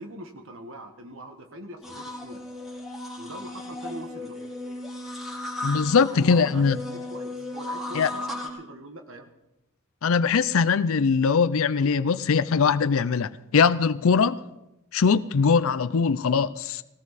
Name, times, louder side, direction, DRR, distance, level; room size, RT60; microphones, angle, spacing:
voice 1, 0.0-2.4 3.2-4.4 6.1-9.3, right 1 dB, 65° right, 1.5 m, -42 dB
sound 1, 1.8-8.5, left 2 dB, ahead, 3.7 m, -35 dB
voice 2, 5.6-6.8 7.9-8.1 10.0-14.4 14.9-16.8, left 5 dB, 65° left, 0.5 m, -21 dB
18.5 x 18.0 x 4.1 m
head